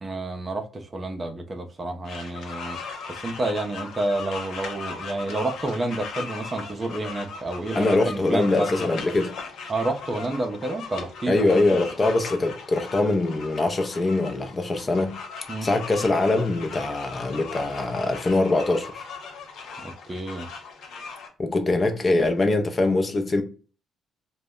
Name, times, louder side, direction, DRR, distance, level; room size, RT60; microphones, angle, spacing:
voice 1, 0.0-2.8 3.1-8.7 9.7-11.6 15.5-15.7 19.8-20.5, right 2 dB, 30° right, 0.5 m, -29 dB
sound 1, 2.0-21.3, left 5 dB, 75° left, 0.6 m, -38 dB
voice 2, 7.7-9.3 11.3-15.2 15.6-19.0 21.4-23.4, left 2 dB, 30° left, 0.5 m, -23 dB
2.1 x 2.0 x 3.5 m
cardioid pair, 90°, 0 cm